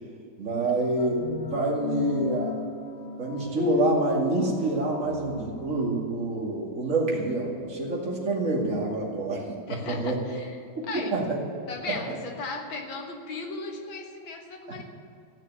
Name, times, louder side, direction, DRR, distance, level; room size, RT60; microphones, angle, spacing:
voice 1, 0.4-2.5 3.2-9.5 9.9-10.2 10.8-11.4 11.9-12.0 14.7-14.8, right 2 dB, 40° right, -3 dB, 2.8 m, -27 dB
sound 1, 1.0-5.9, left 6 dB, 50° left, 0.9 m, -33 dB
voice 2, 9.7-10.6 10.9-11.2 11.7-14.8, left 3 dB, 85° left, 3 dB, 2.2 m, -37 dB
15.0 x 6.5 x 9.9 m, 2.5 s
omnidirectional pair, 2.1 m